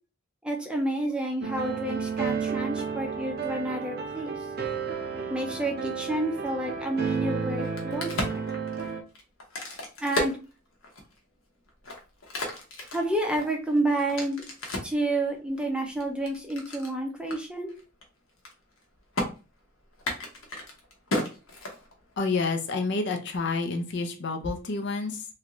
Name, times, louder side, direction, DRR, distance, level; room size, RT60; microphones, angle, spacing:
voice 1, 0.4-4.4 5.1-8.5 10.0-10.4 12.8-14.4 14.8-17.7, right 1 dB, 5° right, 2 dB, 0.5 m, -29 dB
sound 1, 1.4-9.0, right 6 dB, 50° right, 0.5 m, -32 dB
Crack, 7.5-11.2 11.7-15.0 15.6-16.9 17.3-17.4 17.7-18.0 18.3-18.8 19.1-19.3 19.9-22.2, left 1 dB, 75° left, 0.9 m, -34 dB
voice 2, 22.2-25.3, left 3 dB, 55° left, 5 dB, 0.5 m, -29 dB
3.2 x 2.5 x 2.9 m, 0.32 s
head